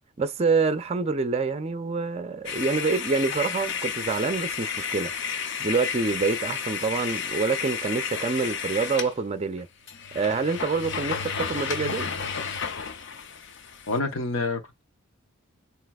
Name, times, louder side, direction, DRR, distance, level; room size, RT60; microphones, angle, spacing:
voice 1, 0.2-5.1 5.6-9.7 10.1-12.1, right 4 dB, 30° right, 0.5 m, -26 dB
sound 1, 2.5-9.1 9.6-9.7 9.9-14.0, left 6 dB, 60° left, 0.6 m, -32 dB
voice 2, 13.9-14.8, left 3 dB, 90° left, 1.1 m, -28 dB
7.5 x 2.9 x 2.3 m
head